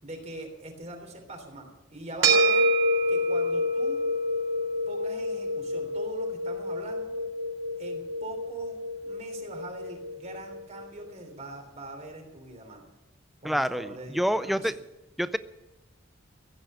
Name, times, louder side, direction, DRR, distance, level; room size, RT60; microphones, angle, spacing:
voice 1, 0.0-2.7 3.1-4.0 4.9-7.1 7.8-12.9 13.4-14.7, right 2 dB, 35° right, 3 dB, 3.4 m, -42 dB
sound 1, 2.2-10.8, equal, 85° right, 3.9 m, -27 dB
voice 2, 13.4-14.7 15.2-15.4, equal, ahead, 12 dB, 0.4 m, -27 dB
16.0 x 9.4 x 8.6 m, 0.98 s
head